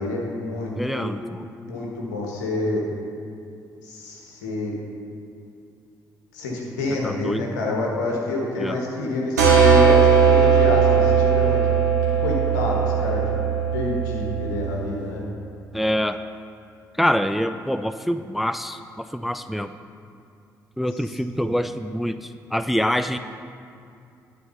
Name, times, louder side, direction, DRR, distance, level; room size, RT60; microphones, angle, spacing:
voice 1, 0.0-1.1 1.6-2.8 3.8-4.7 6.3-11.6 12.2-13.3 13.7-15.2 20.9-21.5, left 2 dB, 80° left, -1 dB, 1.4 m, -28 dB
voice 2, 0.8-1.5 7.0-7.4 8.6-8.8 15.7-16.2 17.0-19.7 20.8-23.2, equal, ahead, 11 dB, 0.4 m, -25 dB
sound 1, 9.4-14.8, right 6 dB, 90° right, 1.3 m, -18 dB
11.0 x 4.6 x 6.7 m, 2.5 s
hypercardioid pair, 45°, 9 cm